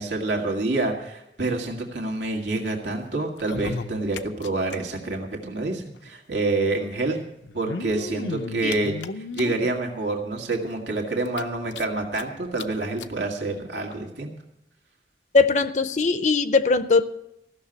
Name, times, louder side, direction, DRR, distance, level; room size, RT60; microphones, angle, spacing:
voice 1, 0.0-7.2 7.5-9.0 9.3-14.3, right 2 dB, 85° right, 2 dB, 2.1 m, -27 dB
sound 1, 3.3-4.8 5.0-5.1 5.3-5.4 6.5-6.6 7.4-9.7 10.3-10.4 10.8-10.9 11.3-12.2 12.6-12.7 13.0-13.1 13.9-14.0, left 4 dB, 90° left, 0.6 m, -34 dB
voice 2, 15.3-17.1, left 4 dB, 40° left, 12 dB, 0.6 m, -20 dB
15.0 x 6.7 x 8.8 m, 0.83 s
head